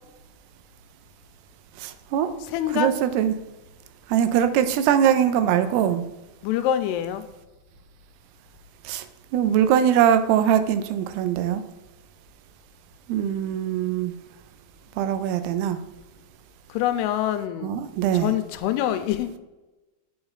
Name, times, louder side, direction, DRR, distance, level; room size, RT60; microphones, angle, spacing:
voice 1, 1.8-2.3 2.7-3.3 4.1-6.0 8.9-9.0 9.3-11.6 13.1-14.1 15.0-15.8 17.6-18.3, right 9 dB, 90° right, 10 dB, 2.7 m, -22 dB
voice 2, 2.4-2.9 6.4-7.3 16.7-19.4, left 11 dB, 85° left, 10 dB, 2.6 m, -26 dB
8.7 x 5.2 x 3.9 m, 1.1 s
omnidirectional pair, 4.6 m